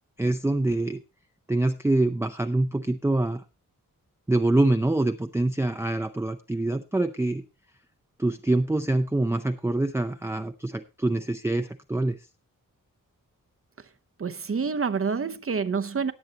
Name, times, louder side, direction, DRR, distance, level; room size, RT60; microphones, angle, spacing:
voice 1, 0.2-1.0 1.5-3.4 4.3-7.4 8.2-12.3, right 2 dB, 10° right, 0.5 m, -25 dB
voice 2, 14.2-16.1, right 5 dB, 40° right, 0.8 m, -27 dB
18.5 x 8.1 x 2.9 m
wide cardioid pair, 160°, 33 cm